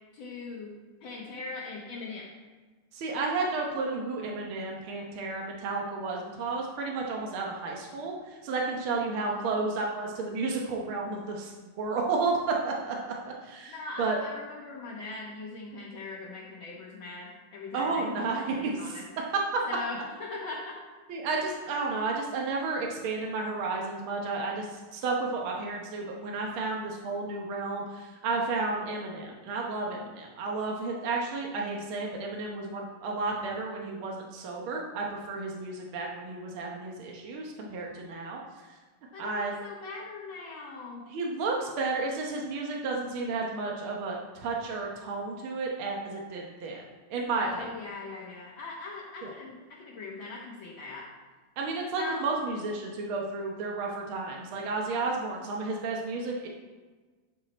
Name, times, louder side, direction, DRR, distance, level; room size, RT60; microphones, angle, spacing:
voice 1, 0.1-0.7 1.0-2.3 9.2-9.6 13.7-19.0 19.7-20.8 39.1-41.0 47.3-51.1 51.9-52.3, left 3 dB, 65° left, -4 dB, 2.0 m, -40 dB
voice 2, 2.9-14.2 17.7-18.6 18.8-19.0 19.5-19.6 21.1-38.7 39.2-39.5 41.1-46.8 47.1-47.7 49.2-49.3 51.6-56.5, right 3 dB, 75° right, -1 dB, 1.9 m, -32 dB
12.0 x 5.8 x 4.3 m, 1.4 s
omnidirectional pair, 2.4 m